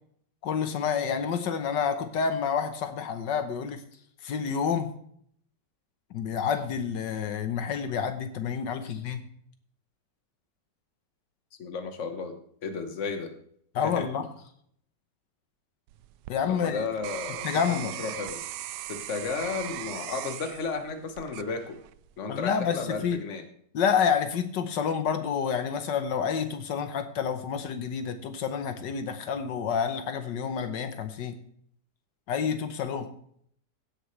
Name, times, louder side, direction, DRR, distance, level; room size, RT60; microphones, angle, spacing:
voice 1, 0.4-3.8 4.2-4.9 6.1-9.2 13.7-14.3 16.3-16.9 17.4-17.9 22.3-23.2 23.7-31.4 32.3-33.1, left 7 dB, 80° left, 8 dB, 1.7 m, -28 dB
voice 2, 11.6-12.3 12.6-13.3 13.8-14.0 16.5-18.4 18.9-21.8 22.2-23.4, left 4 dB, 45° left, 7 dB, 1.6 m, -33 dB
sound 1, 15.9-22.1 22.6-23.1, right 13 dB, 80° right, 1.2 m, -39 dB
16.5 x 9.9 x 3.3 m, 0.66 s
omnidirectional pair, 1.9 m